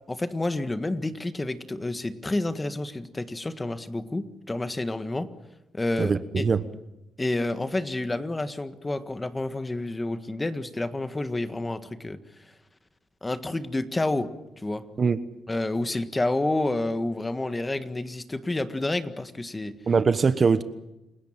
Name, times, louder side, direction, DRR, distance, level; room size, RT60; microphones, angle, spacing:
voice 1, 0.1-5.3 5.7-6.4 7.2-12.2 13.2-14.3 14.6-14.9 15.5-19.7, left 2 dB, 15° left, 1.7 m, -29 dB
voice 2, 6.0-6.6 15.0-15.2 19.9-20.6, right 5 dB, 40° right, 1.2 m, -22 dB
29.0 x 17.5 x 7.4 m
cardioid pair, 90°, 0 cm